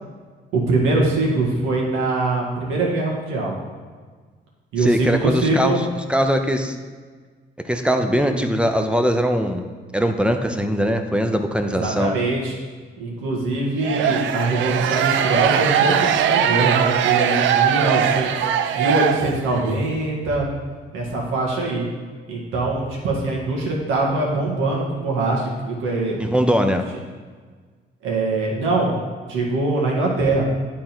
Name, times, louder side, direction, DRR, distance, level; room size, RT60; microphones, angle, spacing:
voice 1, 0.5-3.6 4.7-5.8 11.6-12.5 13.0-18.5 18.8-20.5 20.9-21.9 22.3-26.2 28.0-28.9 29.2-30.4, right 2 dB, 90° right, -2 dB, 1.7 m, -22 dB
voice 2, 4.8-6.8 7.6-9.6 9.9-12.1 26.2-26.8, equal, 5° right, 6 dB, 0.6 m, -21 dB
sound 1, 13.8-19.7, right 9 dB, 75° right, 0.5 m, -20 dB
10.0 x 3.8 x 4.4 m, 1.5 s
cardioid pair, 90°, 20 cm